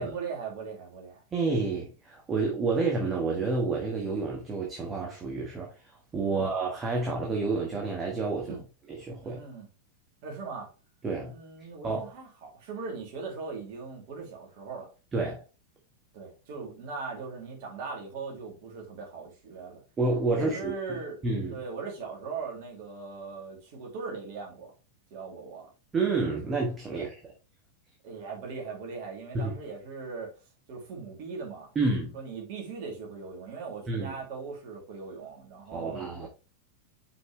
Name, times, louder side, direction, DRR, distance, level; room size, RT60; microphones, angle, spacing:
voice 1, 0.0-1.2 6.3-6.5 8.4-8.6 9.2-9.7 10.2-10.7 11.3-14.9 16.1-19.8 20.3-21.2 21.5-24.7 25.1-25.7 26.9-27.1 28.0-30.3 30.7-31.7 32.1-36.3, right 4 dB, 45° right, 2.9 m, -39 dB
voice 2, 1.3-5.7 6.1-8.6 8.9-9.4 11.0-11.3 11.8-12.1 15.1-15.4 20.0-20.7 21.2-21.6 25.9-27.1 29.3-29.5 31.7-32.1 33.9-34.1 35.7-36.3, right 3 dB, 20° right, 1.5 m, -29 dB
5.8 x 5.6 x 3.2 m
figure-of-eight pair, 90°, 0 cm